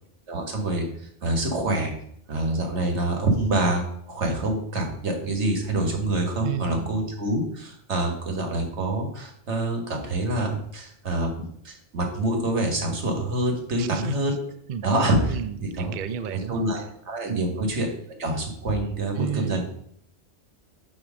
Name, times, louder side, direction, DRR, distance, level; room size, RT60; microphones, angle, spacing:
voice 1, 0.3-1.9 2.3-14.3 14.8-19.6, right 1 dB, 85° right, 3 dB, 1.7 m, -26 dB
voice 2, 6.4-6.9 13.8-14.1 14.7-14.8 15.3-16.8 17.3-17.5 19.2-19.6, right 8 dB, 55° right, 11 dB, 0.6 m, -32 dB
8.6 x 3.2 x 6.1 m, 0.67 s
omnidirectional pair, 1.1 m